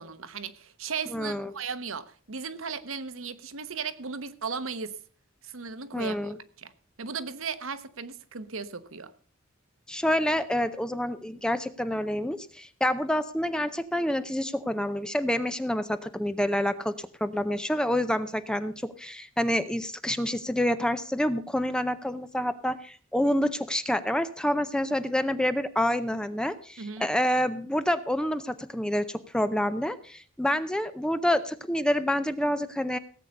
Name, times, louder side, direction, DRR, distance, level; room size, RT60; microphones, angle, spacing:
voice 1, 0.0-5.0 5.4-6.7 7.0-9.1 26.8-27.1, right 5 dB, 65° right, 13 dB, 1.0 m, -36 dB
voice 2, 1.1-1.5 5.9-6.4 9.9-33.0, left 1 dB, 5° left, 11 dB, 0.6 m, -28 dB
17.5 x 8.3 x 5.2 m, 0.44 s
head